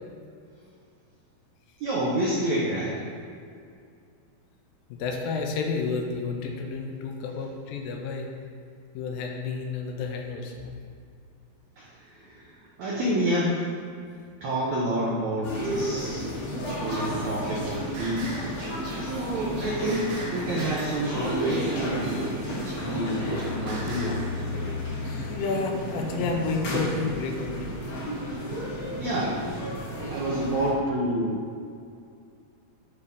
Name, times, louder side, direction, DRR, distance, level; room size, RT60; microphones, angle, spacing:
voice 1, 1.8-3.1 11.8-13.6 14.4-16.2 16.8-22.2 22.7-24.7 28.9-29.4 30.1-31.4, right 1 dB, 80° right, -5 dB, 1.6 m, -29 dB
voice 2, 4.9-8.3 8.9-10.7 25.0-27.7, left 4 dB, 80° left, 2 dB, 2.2 m, -30 dB
sound 1, 15.4-30.7, equal, 60° left, 3.0 m, -32 dB
Singing, 16.7-24.3, right 1 dB, 60° right, 3.0 m, -42 dB
7.3 x 4.6 x 4.8 m, 2.4 s
omnidirectional pair, 4.5 m